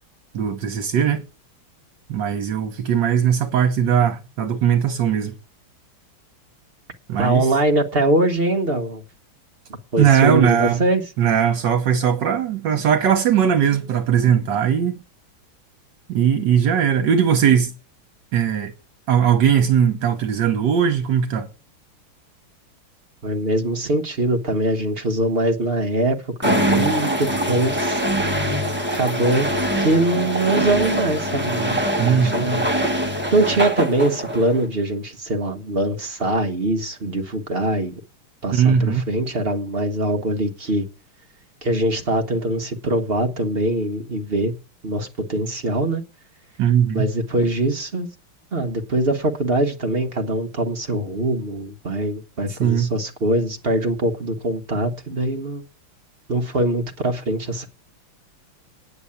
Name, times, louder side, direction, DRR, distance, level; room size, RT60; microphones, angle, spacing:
voice 1, 0.3-1.2 2.1-5.3 7.1-7.5 10.0-10.8 11.2-15.0 16.1-17.7 18.3-18.7 19.1-21.5 32.0-32.5 38.5-39.1 46.6-47.1 52.6-52.9, right 8 dB, 60° right, 1.7 m, -19 dB
voice 2, 7.2-9.0 9.9-11.0 23.2-28.0 28.9-29.5 29.8-32.7 33.3-37.9 38.4-40.8 41.6-44.5 44.8-46.0 46.9-48.1 48.5-55.6 56.3-57.7, right 1 dB, 35° right, 1.1 m, -22 dB
sound 1, 26.4-34.6, equal, 5° right, 1.0 m, -23 dB
9.7 x 7.0 x 8.7 m
omnidirectional pair, 2.3 m